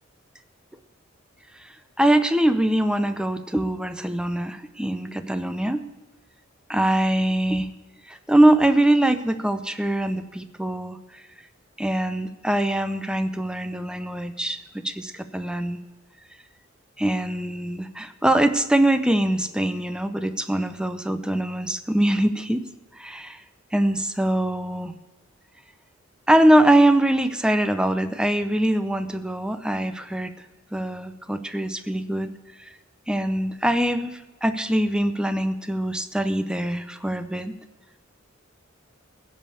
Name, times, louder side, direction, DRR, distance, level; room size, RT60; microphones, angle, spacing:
voice 1, 2.0-5.8 6.7-7.7 8.1-11.0 11.8-14.6 14.8-15.8 17.0-22.6 23.0-23.4 23.7-24.9 26.3-30.3 30.7-32.3 33.1-37.6, right 1 dB, 5° right, 10 dB, 0.6 m, -23 dB
16.5 x 5.5 x 8.4 m, 1.1 s
head